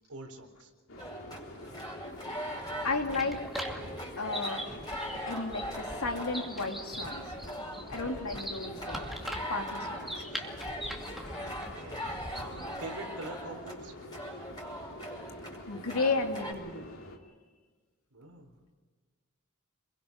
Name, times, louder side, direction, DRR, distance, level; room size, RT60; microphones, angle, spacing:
voice 1, 0.1-0.7 8.6-8.7 10.3-10.4 11.4-13.9 18.1-18.6, right 2 dB, 85° right, 4 dB, 4.0 m, -45 dB
sound 1, 0.9-17.2, left 1 dB, 65° left, 2.8 m, -47 dB
sound 2, 1.0-16.5, equal, 20° left, 5.4 m, -41 dB
sound 3, 2.5-12.8, equal, ahead, 2.4 m, -42 dB
voice 2, 2.8-3.4 4.2-4.7 5.3-7.3 7.9-9.1 9.5-10.1 15.7-16.9, left 3 dB, 85° left, 3 dB, 2.8 m, -33 dB
28.0 x 22.0 x 5.4 m, 1.5 s
head